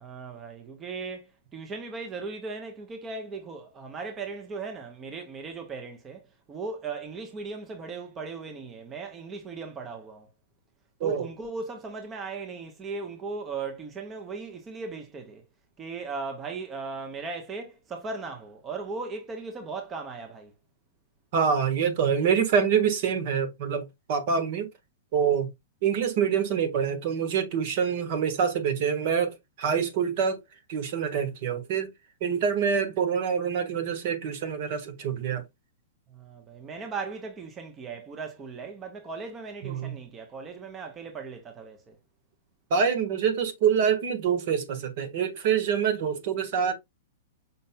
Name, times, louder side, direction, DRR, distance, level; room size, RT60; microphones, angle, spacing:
voice 1, 0.0-10.3 11.0-15.4 15.8-20.5 36.1-42.0, right 4 dB, 20° right, 0.9 m, -37 dB
voice 2, 21.3-24.7 25.1-25.5 25.8-30.4 30.7-31.9 32.2-35.4 39.6-39.9 42.7-46.7, right 7 dB, 55° right, 1.4 m, -26 dB
5.4 x 4.0 x 2.2 m
hypercardioid pair, 130°, 0 cm